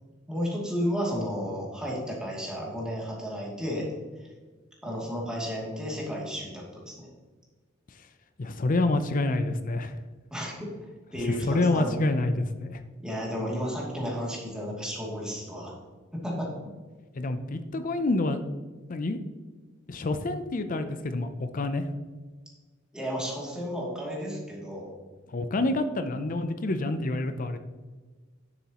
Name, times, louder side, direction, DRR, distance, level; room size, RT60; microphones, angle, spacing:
voice 1, 0.3-3.9 4.8-7.1 10.3-10.7 11.1-12.0 13.0-15.7 16.1-16.5 22.9-24.9, equal, 5° right, -4 dB, 2.6 m, -32 dB
voice 2, 8.4-9.9 11.2-12.8 17.1-18.4 18.9-19.2 19.9-21.9 25.3-27.6, left 2 dB, 45° left, 10 dB, 0.5 m, -27 dB
10.5 x 7.1 x 3.0 m, 1.3 s
head